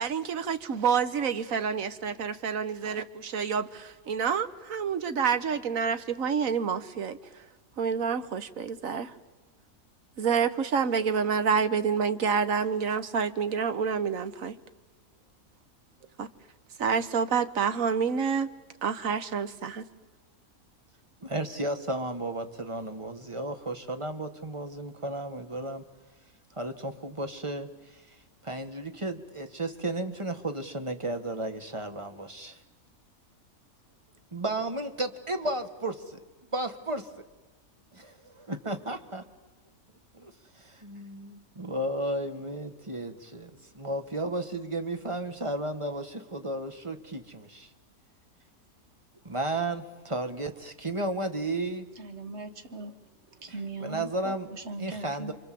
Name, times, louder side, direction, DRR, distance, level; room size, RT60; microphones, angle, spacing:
voice 1, 0.0-7.2 7.8-9.1 10.2-14.5 16.2-16.3 16.8-18.5 18.8-19.8, right 6 dB, 65° right, 11 dB, 1.6 m, -28 dB
voice 2, 21.2-25.8 26.5-28.2 28.4-32.6 34.3-36.0 36.5-37.0 38.0-39.2 40.1-47.7 49.3-51.9 53.5-54.5 54.8-55.3, right 2 dB, 20° right, 7 dB, 1.6 m, -33 dB
voice 3, 52.0-53.0 53.4-55.3, right 3 dB, 50° right, 8 dB, 1.8 m, -39 dB
28.5 x 24.5 x 7.7 m, 1.2 s
omnidirectional pair, 1.6 m